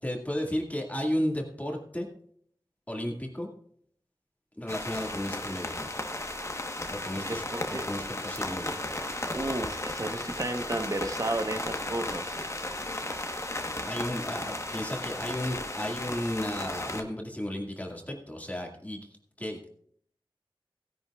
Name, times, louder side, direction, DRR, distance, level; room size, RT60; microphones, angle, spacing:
voice 1, 0.0-2.1 2.9-3.5 4.6-5.9 6.9-8.8 13.8-19.1 19.4-19.7, left 1 dB, 15° left, 0 dB, 2.1 m, -34 dB
sound 1, 4.7-17.0, left 1 dB, 30° left, 1.2 m, -35 dB
voice 2, 7.1-7.8 9.3-12.3, right 2 dB, 40° right, 7 dB, 1.1 m, -33 dB
16.5 x 11.0 x 2.4 m, 0.64 s
wide cardioid pair, 60°, 9 cm